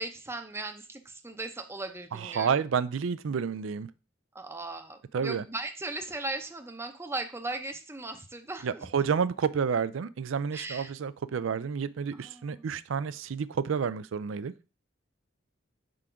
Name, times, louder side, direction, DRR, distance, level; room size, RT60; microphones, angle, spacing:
voice 1, 0.0-2.5 4.3-8.8 10.5-10.9 12.2-12.6, right 2 dB, 15° right, 0.6 m, -38 dB
voice 2, 2.1-3.9 5.1-5.4 8.6-14.5, right 6 dB, 85° right, 0.4 m, -30 dB
4.9 x 3.8 x 5.7 m
head